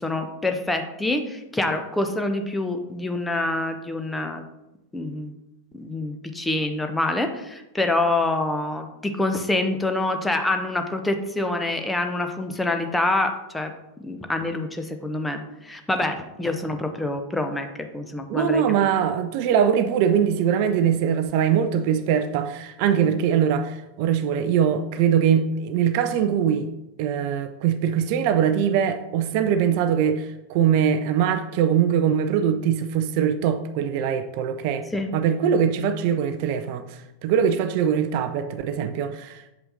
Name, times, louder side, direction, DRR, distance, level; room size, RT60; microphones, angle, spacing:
voice 1, 0.0-4.4 4.9-5.3 5.7-13.7 14.0-18.6 34.9-35.1, left 2 dB, 5° left, 6 dB, 0.7 m, -26 dB
voice 2, 18.3-26.7 27.0-34.8 35.1-39.4, right 8 dB, 45° right, 9 dB, 0.4 m, -22 dB
7.5 x 5.5 x 2.7 m, 0.94 s
figure-of-eight pair, 90°, 0 cm